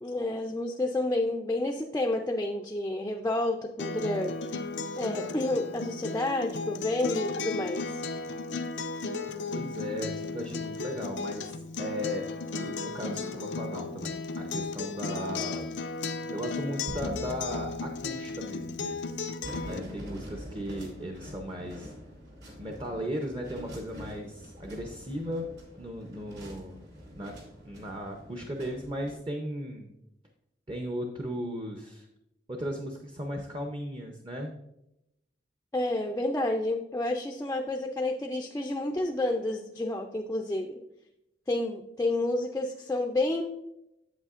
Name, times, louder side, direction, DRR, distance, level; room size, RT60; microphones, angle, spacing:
voice 1, 0.0-4.3 5.0-8.0 35.7-40.7 41.5-43.4, left 2 dB, 15° left, 2 dB, 0.4 m, -30 dB
Acoustic guitar, 3.8-19.8, left 4 dB, 90° left, 0.5 m, -35 dB
voice 2, 9.5-12.3 12.5-15.7 16.3-19.2 19.6-21.9 22.6-25.4 25.8-26.8 27.1-27.4 27.6-30.0 30.7-32.1 32.5-34.5, equal, 30° right, 3 dB, 0.6 m, -36 dB
sound 1, 16.9-19.4, equal, 85° right, 0.9 m, -44 dB
sound 2, 19.4-29.2, equal, 70° right, 2.6 m, -45 dB
8.1 x 7.9 x 2.4 m, 0.86 s
head